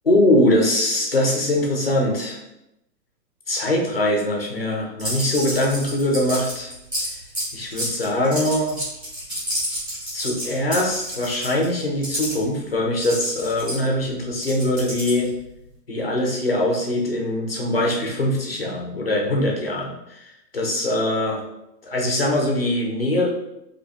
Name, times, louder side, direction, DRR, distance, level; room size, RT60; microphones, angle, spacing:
voice 1, 0.0-2.4 3.5-6.7 7.5-8.8 10.1-15.3 15.9-21.4 21.8-23.3, left 1 dB, 40° left, 0 dB, 0.4 m, -22 dB
sound 1, 5.0-12.3 13.0-15.4, equal, 10° right, 1.3 m, -29 dB
4.1 x 2.8 x 2.3 m, 0.87 s
hypercardioid pair, 175°, 50 cm